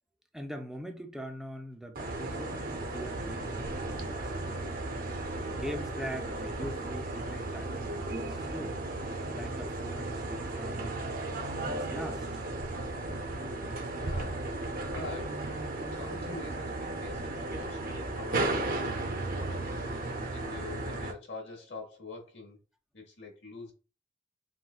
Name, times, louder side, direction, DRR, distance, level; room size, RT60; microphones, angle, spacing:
voice 1, 0.3-4.9 5.5-8.8 9.3-11.0 11.6-12.3, equal, ahead, 0.4 m, -42 dB
sound 1, 2.0-21.1, right 2 dB, 55° right, 0.6 m, -35 dB
voice 2, 13.9-14.5 14.8-15.5 15.9-22.6 22.9-23.7, left 3 dB, 80° left, 1.0 m, -45 dB
3.8 x 2.1 x 2.3 m
head